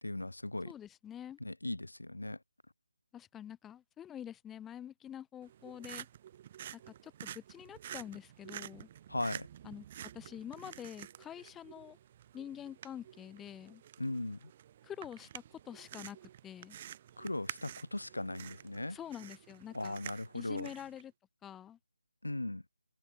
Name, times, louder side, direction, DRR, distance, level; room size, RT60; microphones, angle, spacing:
voice 1, 0.0-0.7 1.4-2.4 9.1-9.5 14.0-14.5 17.2-19.0 19.7-20.7 22.2-22.6, left 2 dB, 75° left, 1.0 m, -38 dB
voice 2, 0.7-1.4 3.1-6.1 6.7-8.9 9.6-9.9 10.1-12.0 12.3-13.8 14.8-16.8 18.9-20.0 20.3-21.1 21.4-21.8, left 10 dB, 5° left, 1.0 m, -47 dB
sound 1, 5.4-21.0, right 11 dB, 25° right, 7.1 m, -50 dB
figure-of-eight pair, 155°, 0 cm